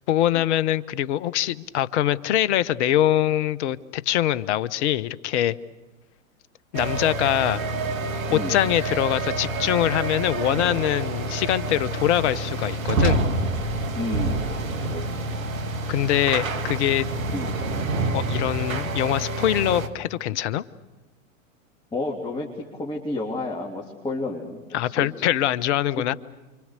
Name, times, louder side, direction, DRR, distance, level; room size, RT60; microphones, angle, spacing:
voice 1, 0.1-5.6 6.7-7.6 8.3-13.2 15.9-17.1 18.1-20.6 24.7-26.1, left 12 dB, 55° left, 17 dB, 1.1 m, -23 dB
sound 1, 6.7-19.9, right 2 dB, 75° right, 2.2 m, -27 dB
voice 2, 13.9-14.4 14.9-15.5 17.3-17.6 21.9-25.1, left 2 dB, 10° left, -2 dB, 3.4 m, -31 dB
29.0 x 25.5 x 6.8 m, 1.2 s
hypercardioid pair, 105°, 41 cm